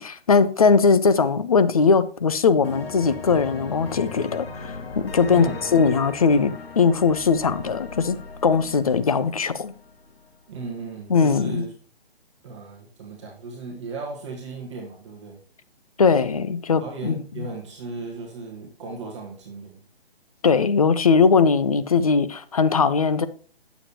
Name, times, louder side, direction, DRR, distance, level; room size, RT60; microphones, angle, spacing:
voice 1, 0.0-8.2 8.4-9.7 11.1-11.6 16.0-17.5 20.4-23.3, left 5 dB, 40° left, 0.4 m, -20 dB
sound 1, 2.6-10.3, left 5 dB, 70° left, 1.2 m, -38 dB
voice 2, 5.3-5.6 10.5-11.7 12.4-15.4 16.8-19.8, right 4 dB, 30° right, 1.4 m, -36 dB
8.8 x 7.0 x 2.9 m
hypercardioid pair, 160°, 31 cm